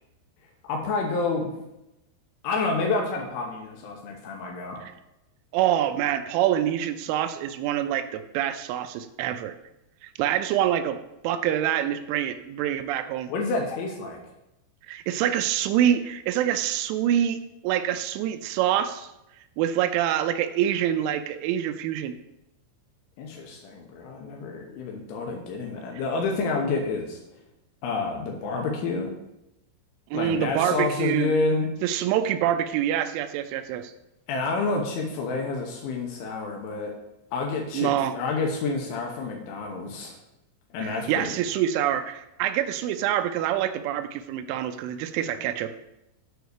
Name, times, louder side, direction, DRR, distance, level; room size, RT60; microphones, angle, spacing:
voice 1, 0.6-1.5 2.4-4.8 13.3-14.2 23.2-27.2 27.8-29.1 30.1-31.7 34.3-36.9 37.3-40.2 40.7-41.4, left 3 dB, 80° left, 1 dB, 3.4 m, -29 dB
voice 2, 5.5-9.5 10.0-11.0 11.2-13.3 14.9-17.4 17.6-19.1 19.6-22.1 30.1-31.3 31.8-33.9 37.7-38.1 40.8-45.7, right 11 dB, 85° right, 10 dB, 2.9 m, -26 dB
8.0 x 4.8 x 6.5 m, 0.88 s
omnidirectional pair, 5.6 m